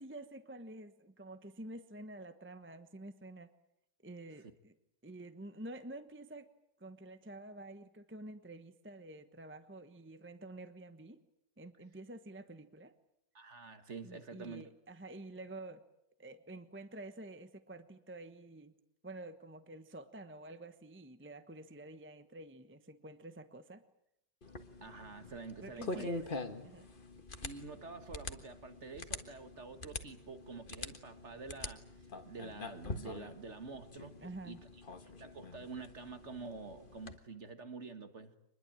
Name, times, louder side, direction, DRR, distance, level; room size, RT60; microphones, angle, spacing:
voice 1, 0.0-3.5 4.0-4.7 5.0-6.5 6.8-11.2 11.6-12.9 14.0-15.8 16.2-18.7 19.0-23.8 25.6-26.3 26.6-26.9 34.2-34.6, right 2 dB, 10° right, 9 dB, 0.9 m, -49 dB
voice 2, 13.3-14.7 24.8-26.1 27.4-31.9 32.3-34.1 34.4-34.6 35.2-38.3, right 4 dB, 40° right, 9 dB, 1.9 m, -47 dB
sound 1, 24.4-37.2, left 2 dB, 30° left, 1.6 m, -45 dB
25.5 x 21.0 x 9.0 m, 0.79 s
omnidirectional pair, 2.0 m